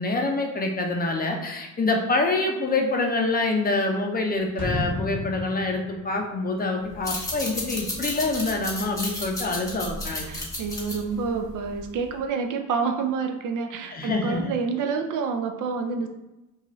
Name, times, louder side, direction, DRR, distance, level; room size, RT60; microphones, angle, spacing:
voice 1, 0.0-10.2 13.9-14.4, left 2 dB, 30° left, 2 dB, 0.5 m, -26 dB
sound 1, 4.6-7.4 7.7-7.8, left 1 dB, 15° right, 1.4 m, -33 dB
sound 2, 6.9-12.1, left 1 dB, 10° left, 0.9 m, -33 dB
voice 2, 10.3-16.1, right 5 dB, 65° right, 5 dB, 0.5 m, -28 dB
2.6 x 2.3 x 3.0 m, 1.0 s
cardioid pair, 80°, 33 cm